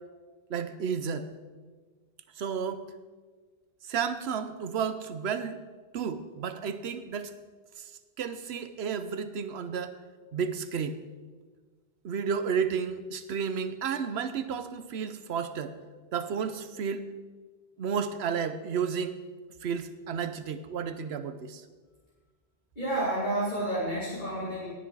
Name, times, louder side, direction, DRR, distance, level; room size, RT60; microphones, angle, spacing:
voice 1, 0.5-1.3 2.4-2.9 3.8-5.6 5.9-7.3 7.8-7.9 8.2-10.0 10.3-11.0 12.0-15.8 16.1-17.1 17.8-19.2 19.6-21.6, right 6 dB, 85° right, 11 dB, 1.0 m, -32 dB
voice 2, 22.8-24.7, right 1 dB, 50° left, -7 dB, 2.6 m, -30 dB
17.5 x 6.2 x 4.7 m, 1.4 s
omnidirectional pair, 1.1 m